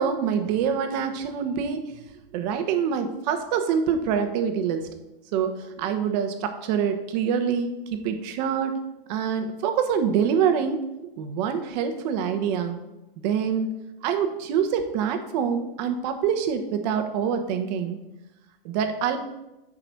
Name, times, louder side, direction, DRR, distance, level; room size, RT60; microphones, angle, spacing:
voice 1, 0.0-1.8 2.3-4.9 5.3-8.8 9.1-10.8 11.2-12.8 13.2-13.7 14.0-18.0 18.6-19.2, right 7 dB, 45° right, 7 dB, 0.9 m, -25 dB
4.9 x 3.9 x 5.8 m, 0.94 s
hypercardioid pair, 120°, 30 cm